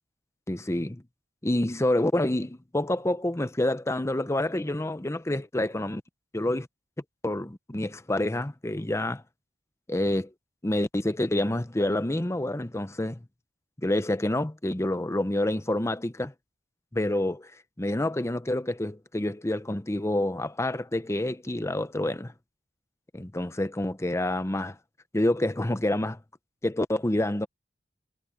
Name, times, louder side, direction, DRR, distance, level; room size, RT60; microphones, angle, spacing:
voice 1, 0.5-1.0 1.4-6.0 6.3-6.7 7.2-9.2 9.9-10.3 10.6-13.2 13.8-16.3 16.9-17.5 17.8-22.3 23.1-24.8 25.1-26.2 26.6-27.5, left 1 dB, 15° left, 0.8 m, -28 dB
head